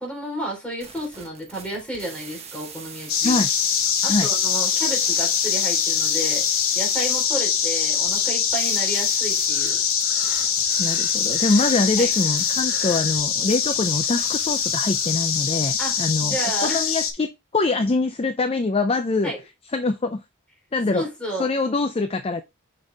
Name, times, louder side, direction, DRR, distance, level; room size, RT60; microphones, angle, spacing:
voice 1, 0.0-3.4 4.0-6.4 6.8-9.8 12.0-12.1 15.8-16.8 19.2-19.4 20.9-21.5, right 1 dB, 5° left, 3.6 m, -31 dB
sound 1, 0.8-15.7, right 6 dB, 30° right, 1.2 m, -43 dB
sound 2, 3.1-17.1, left 7 dB, 70° left, 1.4 m, -23 dB
Breathing, 9.5-13.2, left 3 dB, 45° left, 2.8 m, -43 dB
voice 2, 10.8-19.3 19.7-20.2 20.7-21.0 21.4-22.4, left 3 dB, 25° left, 0.5 m, -24 dB
6.4 x 5.4 x 3.3 m
head